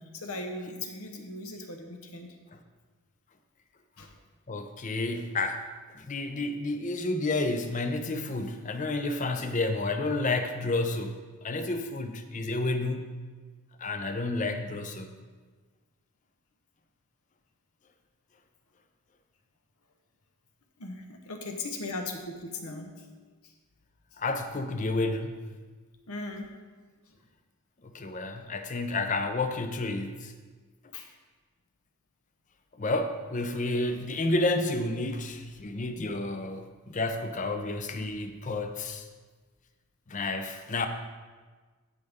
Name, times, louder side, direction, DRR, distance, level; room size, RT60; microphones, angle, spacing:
voice 1, 0.0-2.3 4.0-4.2 20.8-23.3 26.1-26.5 30.9-31.1 40.1-40.2, left 2 dB, 75° left, 4 dB, 1.1 m, -38 dB
voice 2, 4.5-5.6 5.9-13.2 13.8-15.2 24.2-25.4 27.8-30.3 32.8-39.0 40.1-40.9, left 2 dB, 35° left, 7 dB, 0.6 m, -30 dB
14.0 x 5.3 x 3.6 m, 1.4 s
head